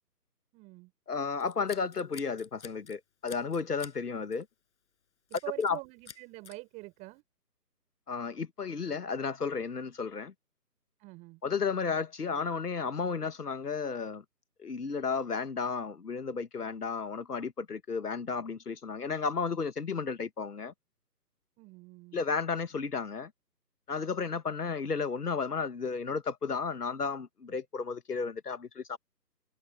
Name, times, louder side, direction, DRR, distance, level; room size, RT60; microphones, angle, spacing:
voice 1, 0.5-0.9 5.3-7.2 11.0-11.4 21.6-22.2, right 22 dB, 15° right, 5.0 m, -45 dB
voice 2, 1.1-4.5 5.6-5.8 8.1-10.3 11.4-14.2 14.6-20.7 22.1-23.3 23.9-29.0, left 5 dB, 65° left, 2.0 m, -33 dB
Scissors, 1.4-3.0 3.3-4.0 4.3-4.5 5.3-5.8 6.1-6.6, left 7 dB, 45° left, 5.6 m, -49 dB
figure-of-eight pair, 150°, 49 cm